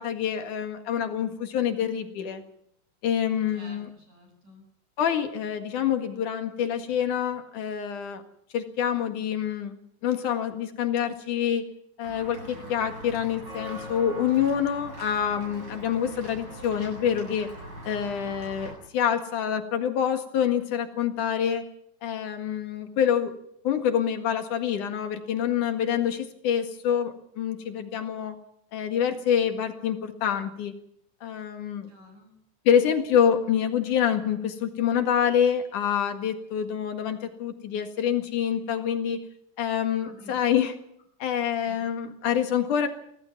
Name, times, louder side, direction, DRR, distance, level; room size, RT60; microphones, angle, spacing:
voice 1, 0.0-2.4 3.0-3.9 5.0-8.2 8.5-11.6 12.0-17.5 17.8-21.6 22.0-23.3 23.6-28.3 28.7-30.7 31.2-31.9 32.6-39.2 39.6-40.8 41.2-42.9, left 8 dB, 85° left, 6 dB, 3.4 m, -26 dB
voice 2, 3.5-4.6 31.9-32.4 40.0-40.4 41.7-41.8, left 1 dB, 90° right, 3 dB, 8.8 m, -50 dB
Walk footsteps / Bell, 12.0-18.7, equal, 35° right, 8.8 m, -41 dB
25.0 x 17.5 x 6.0 m, 0.74 s
omnidirectional pair, 3.4 m